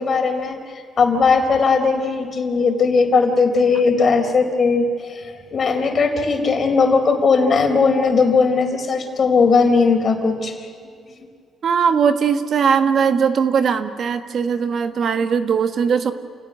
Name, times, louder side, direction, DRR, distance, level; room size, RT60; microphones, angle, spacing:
voice 1, 0.0-10.7, left 4 dB, 45° left, 5 dB, 4.1 m, -18 dB
voice 2, 11.6-16.1, right 6 dB, 55° right, 8 dB, 1.4 m, -19 dB
29.0 x 17.5 x 9.6 m, 2.3 s
cardioid pair, 90°, 0 cm